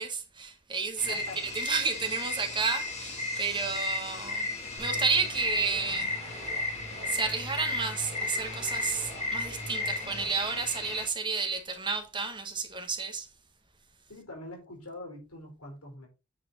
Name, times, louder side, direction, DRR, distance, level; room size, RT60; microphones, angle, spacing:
voice 1, 0.0-4.5 4.8-6.1 7.0-13.3, right 5 dB, 20° right, 1.2 m, -31 dB
sound 1, 1.0-11.1, left 3 dB, 30° left, 2.7 m, -35 dB
voice 2, 1.1-1.4 14.1-16.1, left 1 dB, 85° left, 4.1 m, -43 dB
sound 2, 4.8-10.3, right 1 dB, 45° right, 2.0 m, -44 dB
8.9 x 4.3 x 4.0 m
head